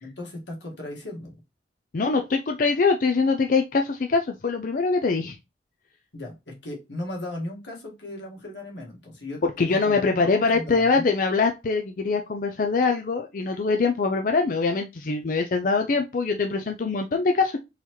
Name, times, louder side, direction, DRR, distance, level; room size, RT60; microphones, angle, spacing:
voice 1, 0.0-1.3 6.1-11.1, left 1 dB, 80° left, 0 dB, 1.7 m, -37 dB
voice 2, 1.9-5.4 9.4-17.6, left 4 dB, 50° left, 5 dB, 0.4 m, -23 dB
4.1 x 4.0 x 3.0 m, 0.24 s
head